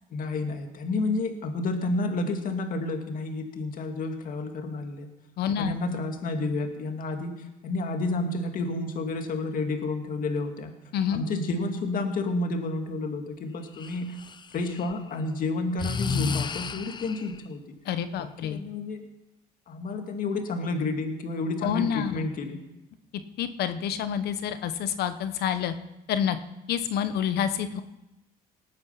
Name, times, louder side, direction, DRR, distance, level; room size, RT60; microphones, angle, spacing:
voice 1, 0.1-5.1 5.6-10.7 11.1-14.2 14.5-17.6 18.2-19.0 19.7-22.6, left 2 dB, 55° left, 5 dB, 2.1 m, -30 dB
voice 2, 5.4-5.7 10.9-11.2 17.8-18.6 21.6-22.3 23.4-25.7 26.1-26.4 26.7-27.8, left 9 dB, 70° left, 11 dB, 1.1 m, -28 dB
Breathing, 13.8-14.9 15.8-17.4, left 6 dB, 25° left, 0.6 m, -31 dB
19.5 x 8.9 x 5.8 m, 0.94 s
cardioid pair, 110°, 17 cm